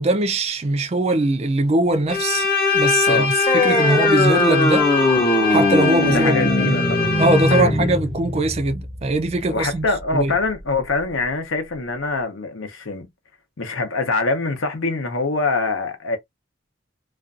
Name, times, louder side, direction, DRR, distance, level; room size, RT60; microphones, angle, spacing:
voice 1, 0.0-2.5 2.7-4.9 5.5-6.4 6.6-6.8 7.2-9.8 10.1-10.3, right 2 dB, 30° right, 0.3 m, -21 dB
Bowed string instrument, 2.1-7.9, left 5 dB, 45° left, 0.9 m, -23 dB
sound 1, 3.5-10.5, left 1 dB, 25° left, 0.5 m, -21 dB
voice 2, 6.1-7.1 7.5-7.9 9.5-13.1 13.6-16.2, left 3 dB, 75° left, 0.7 m, -24 dB
2.5 x 2.2 x 2.4 m
head